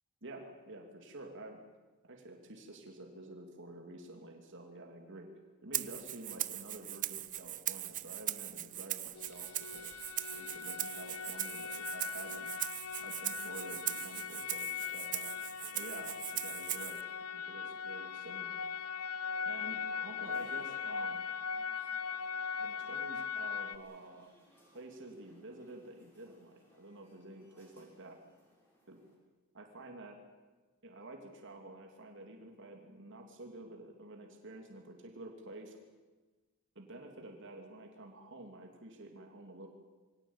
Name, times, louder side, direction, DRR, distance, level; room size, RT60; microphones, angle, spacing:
voice 1, 0.2-1.6 2.0-5.3 5.6-10.0 10.3-12.5 13.0-15.3 15.7-18.6 19.4-21.2 22.6-24.3 24.7-28.2 28.9-29.0 29.5-30.2 30.8-35.8 36.7-39.7, right 2 dB, 55° right, 3 dB, 2.9 m, -50 dB
Rattle (instrument), 5.7-17.0, right 13 dB, 35° right, 0.6 m, -40 dB
sound 1, 9.1-23.8, left 6 dB, 80° left, 0.9 m, -40 dB
sound 2, 9.4-29.2, equal, 10° left, 6.7 m, -65 dB
23.0 x 17.5 x 8.8 m, 1.3 s
head